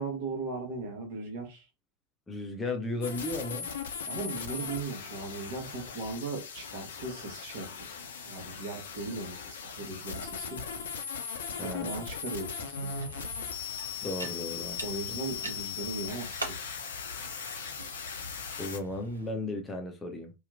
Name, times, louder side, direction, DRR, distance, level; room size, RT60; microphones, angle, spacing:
voice 1, 0.0-1.7 4.0-10.6 11.6-12.9 14.8-16.6, right 3 dB, 50° right, 1.2 m, -38 dB
voice 2, 2.3-3.7 11.6-12.0 14.0-14.8 15.1-15.2 18.6-20.3, left 2 dB, 15° left, 0.6 m, -35 dB
sound 1, 3.0-18.8, left 6 dB, 60° left, 0.5 m, -39 dB
sound 2, 12.7-19.3, right 1 dB, 80° right, 0.7 m, -44 dB
2.8 x 2.3 x 2.4 m
figure-of-eight pair, 90°, 0 cm